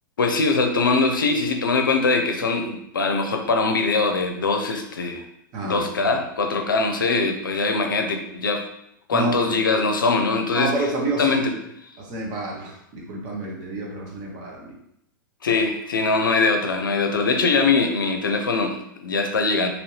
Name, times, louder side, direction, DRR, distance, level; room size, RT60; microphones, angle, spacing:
voice 1, 0.2-5.2 5.6-8.6 9.1-10.9 11.2-11.5 15.4-19.7, left 3 dB, 75° left, 4 dB, 0.5 m, -22 dB
voice 2, 9.1-9.6 10.5-11.4 12.1-14.7 15.5-15.6, right 2 dB, 40° right, -1 dB, 0.9 m, -28 dB
2.9 x 2.7 x 3.1 m, 0.77 s
figure-of-eight pair, 95°, 11 cm